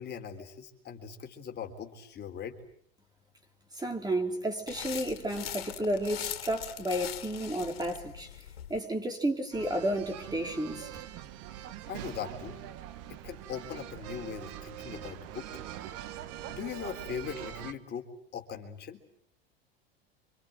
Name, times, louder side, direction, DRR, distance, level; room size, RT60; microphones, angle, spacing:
voice 1, 0.0-2.6 11.9-12.7 13.1-15.5 16.5-18.1 18.3-19.0, left 7 dB, 35° left, 4 dB, 3.8 m, -40 dB
voice 2, 3.7-8.3 8.7-10.9, right 1 dB, 15° right, 4 dB, 4.1 m, -32 dB
sound 1, 4.7-8.8, left 11 dB, 80° left, 2.2 m, -41 dB
sound 2, 9.5-17.7, right 11 dB, 55° right, 2.0 m, -43 dB
27.5 x 26.0 x 7.8 m, 0.66 s
hypercardioid pair, 90°, 30 cm